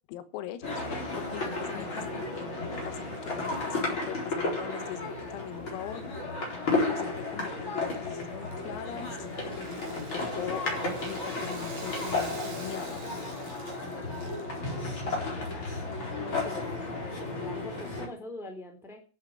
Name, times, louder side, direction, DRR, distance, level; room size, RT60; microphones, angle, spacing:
voice 1, 0.1-0.8 1.2-2.6 2.9-6.0 6.8-9.2 9.6-10.6 11.0-13.1, left 12 dB, 85° left, 11 dB, 4.1 m, -41 dB
sound 1, 0.6-18.1, left 2 dB, 25° left, 4.3 m, -33 dB
Rattle (instrument), 8.3-14.6, right 4 dB, 65° right, 6.0 m, -49 dB
voice 2, 15.3-15.7 16.2-19.0, left 1 dB, ahead, 4 dB, 2.0 m, -44 dB
12.0 x 8.0 x 8.3 m, 0.37 s
omnidirectional pair, 6.0 m